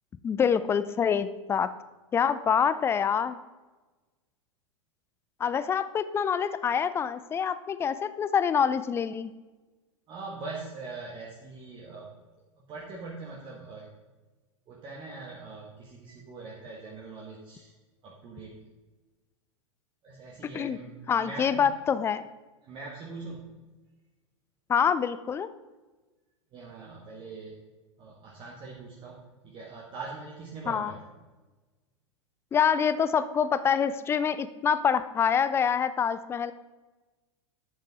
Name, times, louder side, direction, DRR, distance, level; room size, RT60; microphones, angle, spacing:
voice 1, 0.2-1.7 2.1-3.4 5.4-9.3 20.5-20.8 21.1-22.2 24.7-25.5 30.7-30.9 32.5-36.5, left 7 dB, 15° left, 14 dB, 0.5 m, -26 dB
voice 2, 10.1-12.1 12.6-13.9 14.7-17.8 18.0-18.5 20.0-21.7 22.6-23.6 26.5-27.5 28.0-31.0, right 3 dB, 30° right, -3 dB, 1.8 m, -42 dB
11.5 x 8.2 x 3.7 m, 1.2 s
figure-of-eight pair, 90°, 16 cm